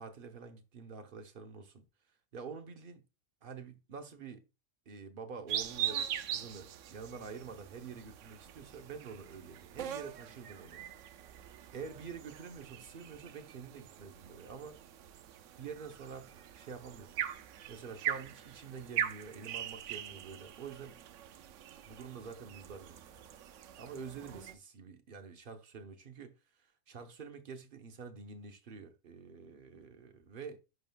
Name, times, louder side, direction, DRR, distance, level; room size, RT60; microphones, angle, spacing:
voice 1, 0.0-1.8 2.3-3.0 3.4-4.4 4.9-10.8 11.7-14.8 15.6-17.2 17.7-21.0 21.8-23.3 23.8-26.3 26.9-30.6, right 5 dB, 50° right, 0.9 m, -47 dB
sound 1, 5.5-24.5, right 10 dB, 80° right, 0.9 m, -42 dB
10.5 x 4.0 x 2.3 m
omnidirectional pair, 1.3 m